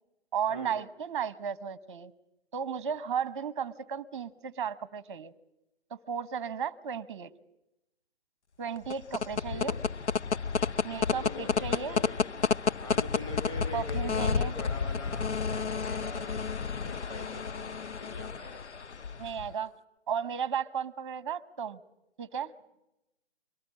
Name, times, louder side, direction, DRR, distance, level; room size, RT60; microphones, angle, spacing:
voice 1, 0.3-2.1 2.5-5.3 5.9-7.3 8.6-9.8 10.8-12.0 13.7-14.5 19.2-19.7 20.1-21.8 22.2-22.5, right 7 dB, 25° right, 18 dB, 1.0 m, -34 dB
sound 1, 8.8-19.5, left 5 dB, 85° left, 0.9 m, -31 dB
voice 2, 9.5-9.8 11.1-12.2 12.8-18.6, left 2 dB, 15° left, 8 dB, 3.5 m, -43 dB
24.0 x 18.0 x 8.5 m, 0.90 s
figure-of-eight pair, 155°, 33 cm